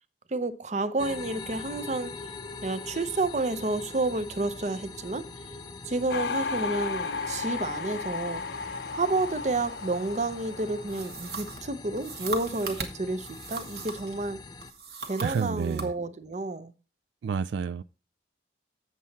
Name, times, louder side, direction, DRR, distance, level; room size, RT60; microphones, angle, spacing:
voice 1, 0.3-2.1 2.6-5.2 5.9-8.4 8.9-14.4 15.1-16.7, right 2 dB, 40° right, 0.6 m, -30 dB
sound 1, 1.0-14.7, left 3 dB, 25° left, 0.5 m, -43 dB
sound 2, 6.1-11.9 12.2-12.7, left 4 dB, 80° left, 0.6 m, -34 dB
sound 3, 10.9-14.2 14.6-15.9, right 3 dB, 65° right, 1.3 m, -39 dB
voice 2, 15.2-15.9 17.2-17.8, right 6 dB, 90° right, 0.3 m, -29 dB
7.6 x 7.5 x 4.1 m
head